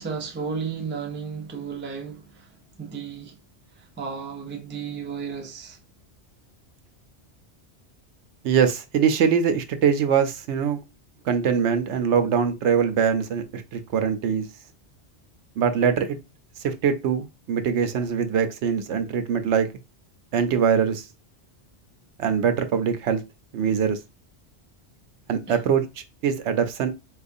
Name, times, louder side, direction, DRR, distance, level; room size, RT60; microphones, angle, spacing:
voice 1, 0.0-2.5 2.8-3.4 3.8-5.8 25.5-25.6, right 6 dB, 20° right, 0.3 m, -33 dB
voice 2, 8.4-10.8 11.3-14.5 15.6-16.2 16.6-19.7 20.3-21.1 22.2-23.2 23.5-24.0 25.3-25.8 26.2-26.9, right 7 dB, 80° right, 0.9 m, -22 dB
4.3 x 2.4 x 2.6 m
omnidirectional pair, 1.2 m